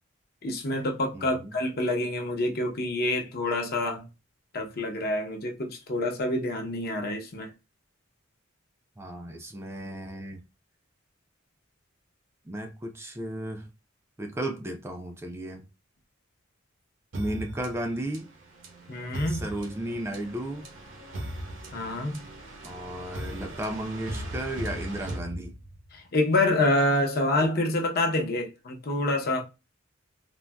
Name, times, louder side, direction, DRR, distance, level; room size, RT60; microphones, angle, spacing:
voice 1, 0.4-4.0 4.5-7.5 18.9-19.5 21.7-22.2 26.1-29.4, left 1 dB, 50° left, 0.7 m, -27 dB
voice 2, 1.1-1.6 9.0-10.4 12.5-13.7 14.2-15.7 17.1-18.3 19.3-20.7 22.6-25.5, right 1 dB, 15° right, 0.4 m, -34 dB
sound 1, 17.1-26.0, right 1 dB, 65° right, 0.9 m, -39 dB
3.8 x 2.1 x 2.2 m
head